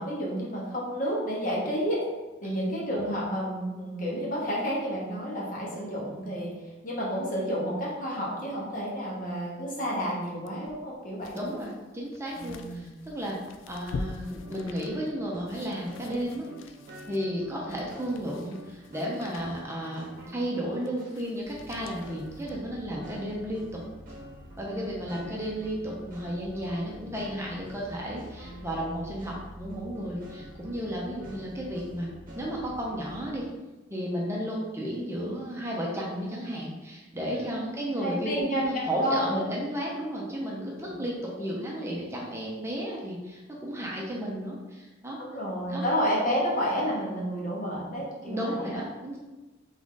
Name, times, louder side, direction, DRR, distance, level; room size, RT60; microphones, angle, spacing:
voice 1, 0.0-2.0 2.4-6.5 6.8-11.4 12.4-12.9 24.7-25.1 37.3-37.7 38.0-39.4 45.2-48.8, equal, 45° left, -4 dB, 1.1 m, -30 dB
sound 1, 10.5-23.1 23.6-23.7, left 3 dB, 80° left, 0.4 m, -45 dB
voice 2, 11.3-13.4 13.7-16.5 17.1-23.8 24.6-32.1 32.3-33.5 33.9-45.2 45.7-45.8 48.2-49.2, equal, 15° right, -3 dB, 0.7 m, -33 dB
sound 2, 13.9-21.2 21.5-33.3, right 1 dB, 45° right, 0.9 m, -47 dB
3.8 x 3.6 x 3.7 m, 1.1 s
head